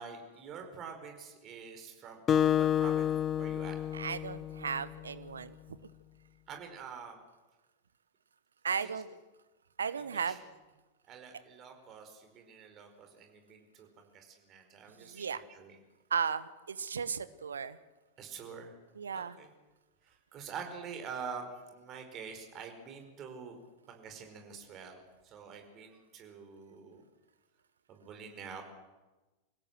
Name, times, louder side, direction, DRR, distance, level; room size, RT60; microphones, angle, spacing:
voice 1, 0.0-3.8 6.5-7.2 8.8-9.0 10.0-10.4 11.1-15.8 18.2-18.7 19.1-19.5 20.0-23.6 23.9-27.0 27.9-28.6, right 6 dB, 35° right, 5 dB, 4.9 m, -46 dB
Acoustic guitar, 2.3-5.0, left 10 dB, 25° left, 0.7 m, -29 dB
voice 2, 3.9-5.6 8.6-9.1 9.8-10.4 15.0-15.4 16.1-17.8 19.0-19.4, right 6 dB, 70° right, 15 dB, 1.0 m, -35 dB
26.0 x 16.0 x 7.8 m, 1.2 s
figure-of-eight pair, 90°, 0 cm